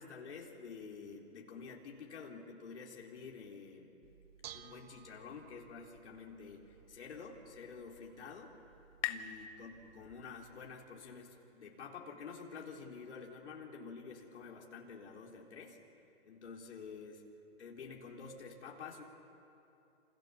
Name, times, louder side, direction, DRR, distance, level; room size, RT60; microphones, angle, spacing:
voice 1, 0.0-3.9 4.5-8.5 9.1-15.8 16.2-17.2 17.6-19.0, left 5 dB, 80° left, -1 dB, 4.1 m, -49 dB
Bell / Dishes pots and pans, 4.0-10.7, right 10 dB, 60° right, 1.4 m, -58 dB
sound 1, 7.6-10.9, left 12 dB, 35° left, 1.5 m, -45 dB
28.5 x 27.5 x 7.1 m, 2.8 s
hypercardioid pair, 125°, 34 cm